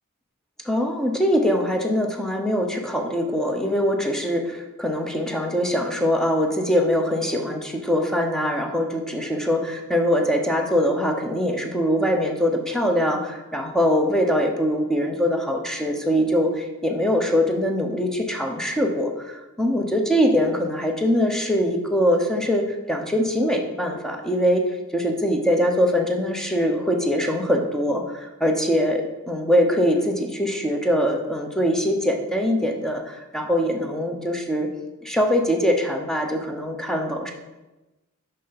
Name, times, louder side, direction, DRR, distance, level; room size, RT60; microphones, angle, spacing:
voice 1, 0.6-24.6 24.9-34.7 35.0-37.3, equal, ahead, 3 dB, 0.9 m, -22 dB
6.1 x 5.6 x 5.9 m, 1.1 s
head